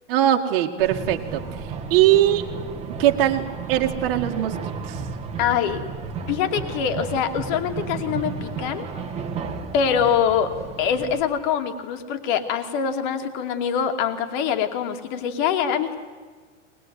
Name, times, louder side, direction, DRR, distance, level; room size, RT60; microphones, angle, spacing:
voice 1, 0.1-1.4 1.9-2.4 3.0-4.5 4.9-5.1, right 12 dB, 50° right, 2 dB, 2.1 m, -20 dB
sound 1, 0.8-11.2, right 5 dB, 15° right, 1.9 m, -33 dB
voice 2, 5.4-5.8 6.2-8.9 9.7-10.5 10.8-16.0, left 8 dB, 40° left, 6 dB, 2.5 m, -24 dB
23.5 x 21.0 x 9.5 m, 1.5 s
supercardioid pair, 175°, 37 cm